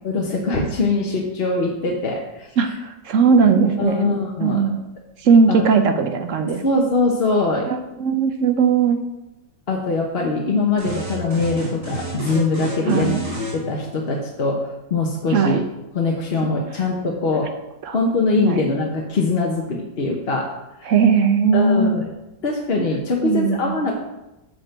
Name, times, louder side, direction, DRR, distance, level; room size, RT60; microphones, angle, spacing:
voice 1, 0.0-2.7 3.8-4.6 5.5-5.7 6.5-7.7 9.7-13.1 13.5-15.6 15.9-17.5 17.9-20.5 20.8-20.9 21.5-22.1 22.4-23.9, left 3 dB, 40° left, 0 dB, 1.0 m, -22 dB
voice 2, 2.6-4.1 4.4-4.8 5.2-6.6 7.7-9.0 12.9-13.2 15.3-15.6 17.8-17.9 18.4-18.7 20.9-22.0 23.2-23.8, right 5 dB, 60° right, 7 dB, 0.9 m, -18 dB
sound 1, 10.8-13.6, right 1 dB, 10° right, 2.4 m, -30 dB
8.6 x 4.4 x 6.7 m, 0.97 s
omnidirectional pair, 1.9 m